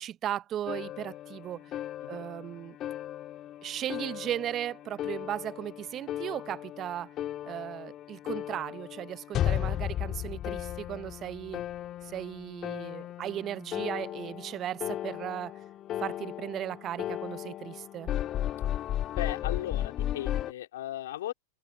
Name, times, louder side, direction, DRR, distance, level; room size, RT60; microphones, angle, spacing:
voice 1, 0.0-1.6 2.1-2.8 3.6-7.1 7.4-11.6 12.0-15.6 16.0-18.1, right 11 dB, 35° right, 0.8 m, -36 dB
sound 1, 0.7-20.5, left 12 dB, 35° left, 1.6 m, -35 dB
voice 2, 19.1-21.3, left 13 dB, 70° left, 3.5 m, -37 dB
open air
hypercardioid pair, 100°, 0 cm